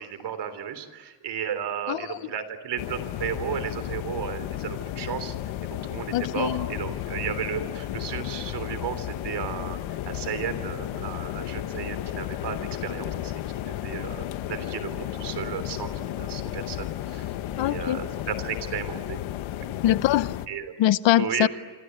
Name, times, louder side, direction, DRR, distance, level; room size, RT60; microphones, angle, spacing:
voice 1, 0.0-5.4 5.9-9.8 10.0-13.3 13.7-17.3 17.6-19.2 19.6-19.8 20.5-20.7 21.2-21.5, right 8 dB, 60° right, 11 dB, 3.5 m, -34 dB
voice 2, 1.9-2.2 6.1-6.7 17.6-18.0 19.8-20.3 20.8-21.5, left 13 dB, 70° left, 16 dB, 0.9 m, -23 dB
sound 1, 2.8-20.5, left 12 dB, 85° left, 1.4 m, -33 dB
28.0 x 26.0 x 8.0 m, 1.4 s
cardioid pair, 145°, 46 cm